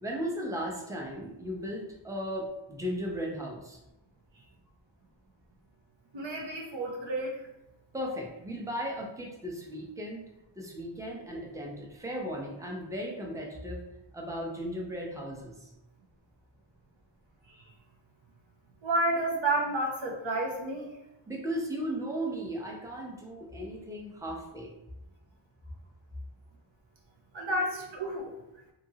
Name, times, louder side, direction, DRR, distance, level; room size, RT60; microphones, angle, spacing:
voice 1, 0.0-3.8 7.9-10.2 10.6-13.8 14.1-15.7 21.3-24.7, equal, 5° right, -1 dB, 0.6 m, -36 dB
voice 2, 6.1-7.5 18.8-20.9 27.3-28.3, right 1 dB, 85° right, -1 dB, 0.7 m, -30 dB
2.8 x 2.6 x 2.7 m, 0.89 s
wide cardioid pair, 45°, 44 cm